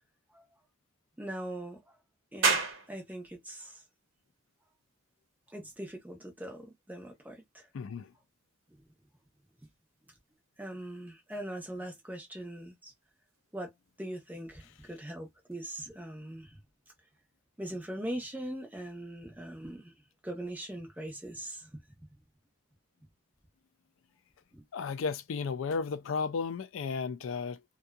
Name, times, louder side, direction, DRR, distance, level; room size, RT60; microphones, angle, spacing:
voice 1, 1.2-1.9 2.3-2.6 2.9-3.8 5.5-7.7 8.7-8.8 10.6-12.9 13.5-13.7 14.0-16.6 17.6-19.9 20.2-21.8 24.5-24.6, right 1 dB, 10° right, 0.7 m, -41 dB
sound 1, 2.4-15.5, right 4 dB, 80° right, 0.9 m, -40 dB
voice 2, 7.7-8.1 24.7-27.6, left 5 dB, 85° left, 0.4 m, -34 dB
2.6 x 2.3 x 2.3 m
head